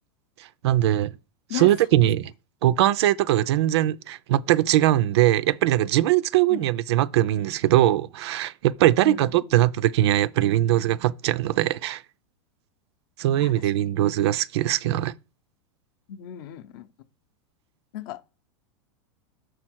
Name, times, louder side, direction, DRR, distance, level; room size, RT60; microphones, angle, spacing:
voice 1, 0.6-1.1 1.5-2.3 2.6-12.0 13.2-15.1, right 14 dB, 60° right, 0.4 m, -21 dB
voice 2, 2.6-2.9 6.5-6.7 9.0-9.6 13.4-13.5 16.1-16.9 17.9-18.2, left 11 dB, 45° left, 0.6 m, -36 dB
6.7 x 4.4 x 6.1 m
supercardioid pair, 165°, 16 cm